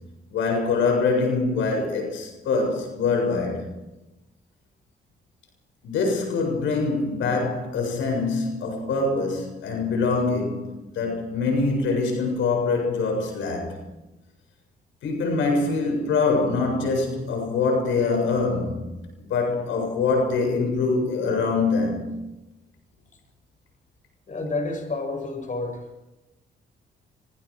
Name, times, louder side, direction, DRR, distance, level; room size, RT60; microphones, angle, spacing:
voice 1, 0.3-3.7 5.8-13.8 15.0-18.9 19.2-22.2, left 4 dB, 85° left, 7.3 m, -24 dB
voice 2, 24.3-25.8, left 2 dB, 40° left, 7.5 m, -29 dB
26.5 x 26.0 x 5.1 m
cardioid pair, 80°, 19 cm